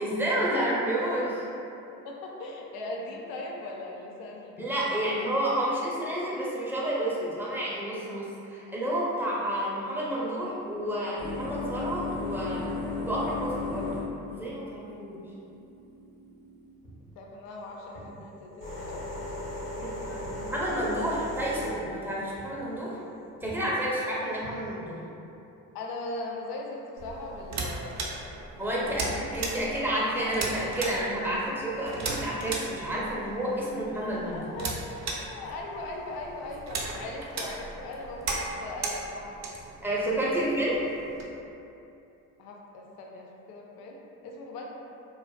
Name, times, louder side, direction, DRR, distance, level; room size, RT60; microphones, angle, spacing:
voice 1, 0.0-1.4 4.6-12.8 13.1-13.9 14.3-15.3 19.7-23.0 23.4-25.0 28.6-34.5 39.8-40.8, right 1 dB, 5° right, -7 dB, 0.6 m, -30 dB
voice 2, 2.0-5.0 17.2-19.5 20.2-20.4 25.7-28.4 28.6-29.1 34.3-39.4 40.4-40.7 42.4-44.7, left 2 dB, 65° left, -1 dB, 0.5 m, -40 dB
sound 1, 10.4-16.7 17.5-23.2 24.2-24.7, left 2 dB, 90° left, 1.1 m, -37 dB
Walk footsteps, 16.8-17.1 17.9-18.1 19.0-19.2 19.6-21.0 21.3-21.5 21.9-22.0 22.4-22.6 22.9-23.1 23.4-23.6 24.4-25.1, right 1 dB, 30° left, 0.7 m, -49 dB
sound 2, 27.0-41.2, right 3 dB, 45° right, 0.5 m, -37 dB
2.4 x 2.3 x 2.2 m, 2.8 s
hypercardioid pair, 50°, 39 cm